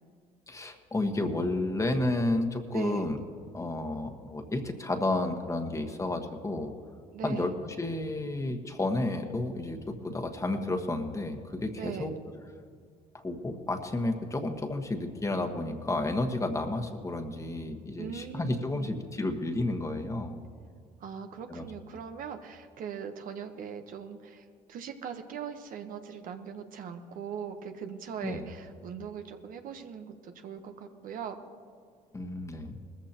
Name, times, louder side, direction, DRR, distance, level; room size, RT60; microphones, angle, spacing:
voice 1, 0.5-3.2 3.5-6.7 7.2-12.1 13.1-20.4 21.5-21.6 28.2-28.4 32.1-32.7, left 2 dB, 20° left, 6 dB, 1.4 m, -31 dB
voice 2, 2.7-3.1 7.1-7.6 11.8-12.1 18.0-18.9 21.0-31.4, right 7 dB, 60° right, 7 dB, 1.1 m, -40 dB
19.5 x 14.5 x 3.0 m, 2.2 s
supercardioid pair, 85°, 16 cm